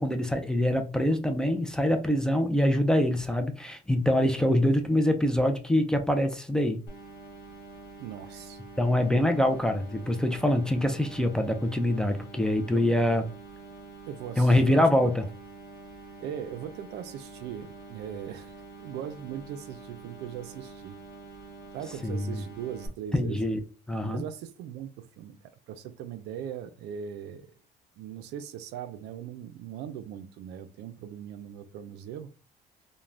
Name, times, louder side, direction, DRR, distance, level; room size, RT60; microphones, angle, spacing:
voice 1, 0.0-6.8 8.8-13.3 14.4-15.2 22.0-22.4 23.1-23.6 23.9-24.2, left 1 dB, 5° left, 0.4 m, -24 dB
sound 1, 6.9-22.9, right 3 dB, 65° left, 0.8 m, -47 dB
voice 2, 8.0-8.6 12.7-12.8 14.1-15.1 16.2-18.5 18.8-21.0 21.7-23.4 24.1-25.4 25.7-27.5 28.0-32.3, right 9 dB, 85° right, 0.4 m, -39 dB
2.4 x 2.1 x 3.2 m
cardioid pair, 110°, 17 cm